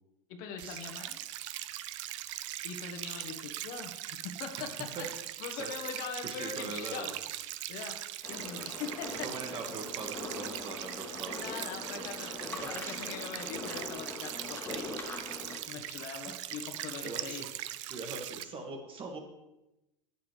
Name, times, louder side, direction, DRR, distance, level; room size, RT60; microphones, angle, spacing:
voice 1, 0.3-1.2 2.6-3.9 4.2-5.1 5.4-7.1 7.7-7.9 8.3-9.3 11.4-15.2 15.5-17.5, left 6 dB, 55° left, 4 dB, 1.1 m, -42 dB
sound 1, 0.6-18.4, right 14 dB, 70° right, 0.4 m, -41 dB
voice 2, 6.2-7.1 9.2-11.4 11.9-12.4 12.6-13.0 16.2-16.3 17.0-17.5 17.9-19.2, right 3 dB, 35° right, 4 dB, 1.3 m, -42 dB
sound 2, 8.2-15.6, left 3 dB, 15° left, 1.2 m, -42 dB
8.5 x 6.8 x 3.3 m, 0.96 s
hypercardioid pair, 105°, 16 cm